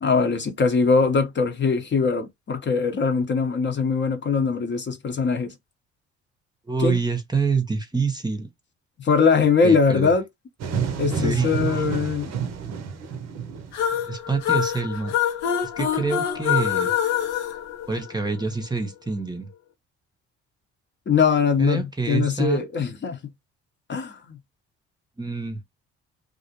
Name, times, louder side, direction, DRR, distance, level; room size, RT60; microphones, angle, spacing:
voice 1, 0.0-5.5 6.8-7.0 9.0-10.2 11.0-12.3 21.1-23.2 23.9-24.4, left 5 dB, 35° left, 0.8 m, -22 dB
voice 2, 6.7-8.5 9.6-10.1 11.1-11.5 14.1-15.2 15.6-16.9 17.9-19.5 21.6-22.6 25.2-25.6, right 4 dB, 15° right, 0.7 m, -26 dB
sound 1, 10.6-14.1, right 6 dB, 55° right, 0.7 m, -29 dB
sound 2, 13.7-18.5, left 9 dB, 85° left, 0.7 m, -25 dB
2.4 x 2.0 x 2.8 m
hypercardioid pair, 60°, 32 cm